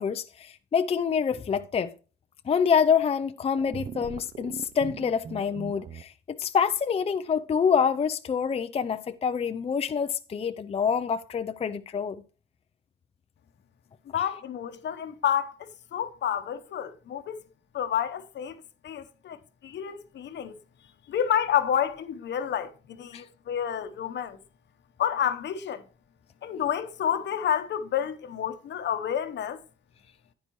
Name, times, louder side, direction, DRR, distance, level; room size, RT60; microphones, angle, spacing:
voice 1, 0.0-1.9 2.5-12.2 23.1-23.2, left 6 dB, 30° left, 0.4 m, -26 dB
sound 1, 3.6-6.0, right 7 dB, 40° right, 0.5 m, -40 dB
voice 2, 14.1-17.4 17.7-18.6 18.8-20.6 21.1-24.4 25.0-25.8 26.4-29.6, left 9 dB, 60° left, 0.9 m, -29 dB
9.9 x 9.4 x 3.0 m
cardioid pair, 90°, 20 cm